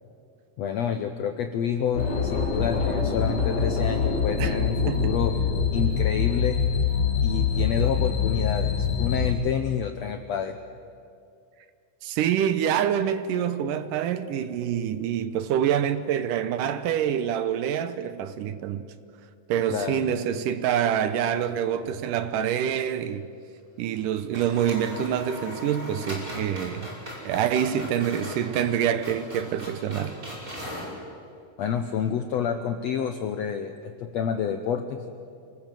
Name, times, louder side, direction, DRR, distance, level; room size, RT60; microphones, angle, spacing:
voice 1, 0.6-5.3 5.7-6.6 7.2-10.6 19.7-20.4 31.6-35.0, left 7 dB, 75° left, 1.5 m, -28 dB
sound 1, 1.9-9.3, left 6 dB, 35° left, 2.5 m, -25 dB
voice 2, 4.9-5.2 12.0-18.9 19.5-23.3 23.8-26.9 27.3-30.2, right 9 dB, 75° right, 2.2 m, -26 dB
sound 2, 21.2-22.0 22.3-22.4 23.9-24.1 24.3-30.9, equal, 20° right, 5.9 m, -39 dB
26.5 x 19.5 x 7.6 m
omnidirectional pair, 4.1 m